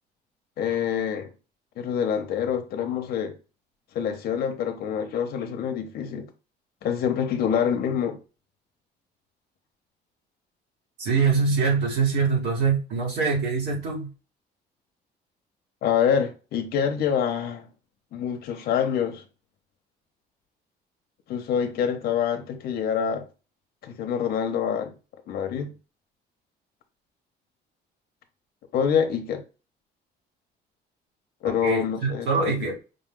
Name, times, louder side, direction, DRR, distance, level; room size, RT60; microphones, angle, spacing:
voice 1, 0.6-1.3 1.8-3.3 3.9-6.3 6.8-8.2 15.8-17.7 18.1-19.2 21.3-23.2 23.8-24.9 25.3-25.7 28.7-29.4 31.4-32.7, left 8 dB, 60° left, 0.6 m, -26 dB
voice 2, 11.0-14.1 31.4-32.8, right 5 dB, 80° right, 2.0 m, -24 dB
5.2 x 2.2 x 3.7 m
cardioid pair, 170°, 18 cm